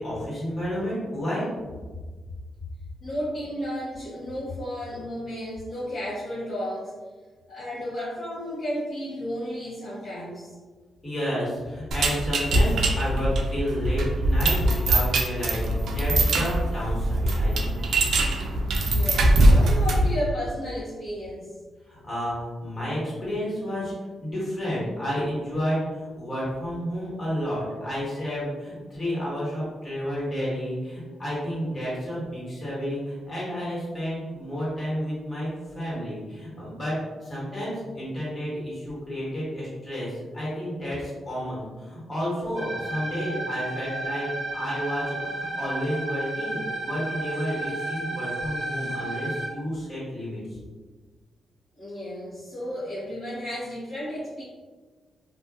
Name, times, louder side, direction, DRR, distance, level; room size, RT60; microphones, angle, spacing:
voice 1, 0.0-1.5 11.0-17.8 21.9-23.9 24.2-36.9 37.2-50.4, equal, 30° left, -7 dB, 1.4 m, -31 dB
voice 2, 3.0-6.9 7.5-10.5 18.8-21.5 51.8-54.4, equal, 55° left, -10 dB, 0.8 m, -33 dB
sound 1, 11.9-20.2, right 1 dB, 75° right, 0.4 m, -22 dB
sound 2, 42.5-49.5, right 2 dB, 90° left, 1.0 m, -32 dB
2.6 x 2.3 x 2.3 m, 1.4 s
cardioid pair, 85°, 0 cm